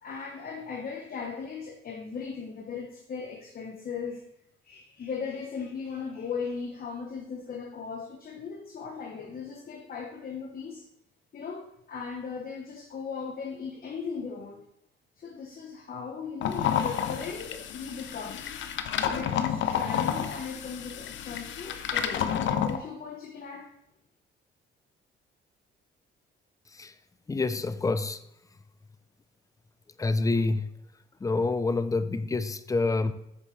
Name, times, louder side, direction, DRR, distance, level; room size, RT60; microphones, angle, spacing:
voice 1, 0.0-4.2 4.6-10.8 11.3-14.6 15.2-18.4 19.0-23.7, left 5 dB, 50° left, 2 dB, 1.0 m, -38 dB
sound 1, 16.4-22.8, left 8 dB, 75° left, 0.7 m, -30 dB
voice 2, 27.3-28.2 30.0-30.7 31.2-33.1, left 3 dB, 15° left, 12 dB, 0.5 m, -27 dB
8.8 x 6.6 x 3.2 m, 0.79 s
cardioid pair, 90°, 20 cm